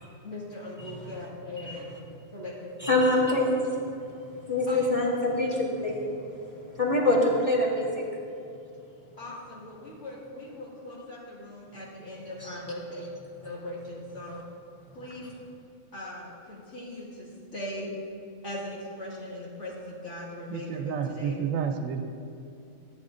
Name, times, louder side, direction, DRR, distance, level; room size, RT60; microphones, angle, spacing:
voice 1, 0.2-1.9 2.3-3.1 4.7-4.9 9.2-13.0 13.4-14.5 14.9-15.4 15.9-17.9 18.4-21.4, left 1 dB, 70° left, -6 dB, 2.5 m, -39 dB
voice 2, 2.8-8.0 12.4-12.6, left 1 dB, 25° left, -5 dB, 1.8 m, -26 dB
voice 3, 20.5-22.0, right 7 dB, 90° right, 6 dB, 1.0 m, -30 dB
14.0 x 8.8 x 2.5 m, 2.6 s
omnidirectional pair, 1.3 m